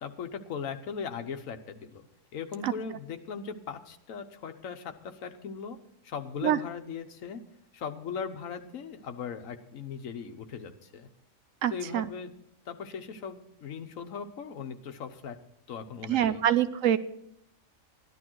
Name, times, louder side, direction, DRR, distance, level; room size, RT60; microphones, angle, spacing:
voice 1, 0.0-2.0 2.3-5.8 6.0-7.4 7.7-11.1 11.7-12.3 12.7-15.4 15.7-16.4, left 6 dB, 80° left, 7 dB, 1.4 m, -38 dB
voice 2, 11.6-12.1 16.1-17.0, right 11 dB, 75° right, 14 dB, 1.0 m, -25 dB
14.0 x 11.0 x 4.6 m, 0.76 s
omnidirectional pair, 1.4 m